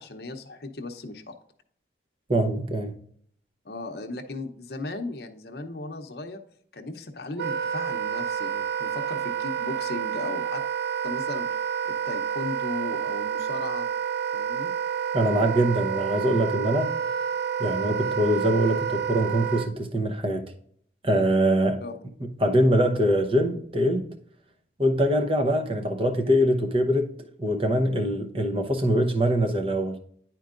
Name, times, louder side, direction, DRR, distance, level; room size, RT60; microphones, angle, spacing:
voice 1, 0.0-1.3 3.6-6.4 6.7-10.6 11.0-11.5 12.0-13.9 14.3-14.7 21.8-21.9, left 2 dB, 65° left, 0.8 m, -36 dB
voice 2, 2.3-3.0 15.1-16.9 17.6-20.4 21.0-21.8 22.4-24.1 24.8-30.0, equal, 30° right, 0.8 m, -23 dB
Wind instrument woodwind instrument, 7.4-19.7, right 8 dB, 75° right, 0.5 m, -29 dB
10.5 x 4.4 x 2.5 m
head